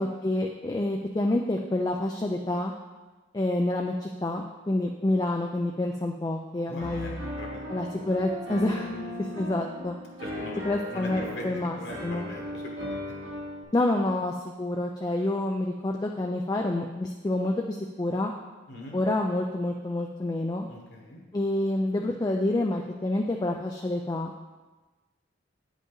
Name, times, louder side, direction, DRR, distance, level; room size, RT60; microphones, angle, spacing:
voice 1, 0.0-2.7 3.3-7.2 7.7-8.9 9.4-9.9 10.7-12.3 13.7-18.3 18.9-20.7 21.3-24.3, left 1 dB, 20° left, 2 dB, 0.3 m, -28 dB
voice 2, 6.7-8.1 8.9-9.2 10.2-13.2 18.7-19.0 20.7-21.2, left 1 dB, 60° left, -1 dB, 1.4 m, -42 dB
Piano, 6.8-13.6, left 1 dB, 75° right, 2.0 m, -37 dB
9.0 x 5.1 x 3.9 m, 1.2 s
head